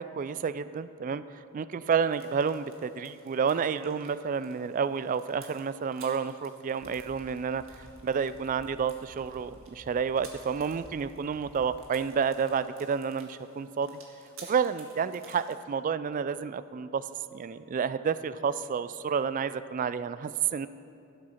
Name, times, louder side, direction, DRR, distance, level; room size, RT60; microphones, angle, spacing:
voice 1, 0.0-7.6 8.0-14.0 14.4-17.1 17.3-20.7, right 6 dB, 40° right, 14 dB, 0.3 m, -30 dB
sound 1, 2.1-15.6, right 4 dB, 65° right, 1.7 m, -55 dB
sound 2, 6.8-7.1 7.5-7.9 8.3-8.6 9.0-9.4 9.8-10.1 10.5-10.9 11.3-11.6, left 1 dB, 30° left, 2.3 m, -53 dB
12.0 x 7.9 x 5.7 m, 2.6 s
head